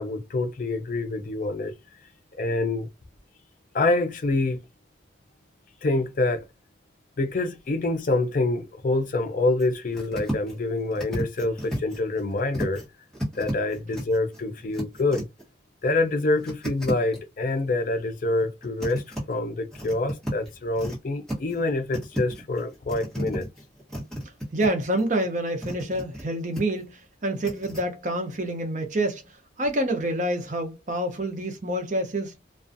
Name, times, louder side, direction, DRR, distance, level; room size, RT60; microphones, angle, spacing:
voice 1, 0.0-1.7 2.4-2.9 3.7-4.6 5.8-6.4 7.2-12.8 13.3-15.2 15.8-23.5, left 2 dB, 45° left, 0.4 m, -26 dB
sound 1, 9.6-9.7 9.9-10.6 10.9-12.8 13.1-15.4 16.4-17.2 18.4-19.2 19.7-21.0 21.3-21.7 21.9-24.7 25.0-26.2 26.5-26.8 27.4-27.8, equal, 5° left, 1.0 m, -33 dB
voice 2, 24.5-29.3 29.6-32.4, right 1 dB, 40° right, 0.5 m, -27 dB
2.4 x 2.2 x 2.5 m
head